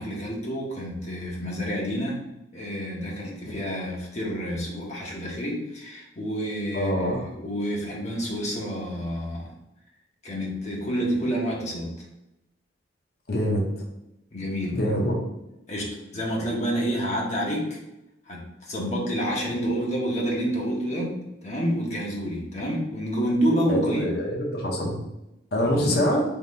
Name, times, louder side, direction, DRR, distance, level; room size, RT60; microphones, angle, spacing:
voice 1, 0.0-2.2 2.5-9.5 10.2-12.1 14.3-14.8 15.7-17.8 18.3-24.1 25.6-26.0, equal, 40° left, -2 dB, 0.9 m, -29 dB
voice 2, 6.7-7.3 13.3-13.8 14.7-15.2 23.7-24.9 25.5-26.2, equal, 60° left, 0 dB, 1.0 m, -25 dB
3.6 x 2.8 x 4.1 m, 0.89 s
head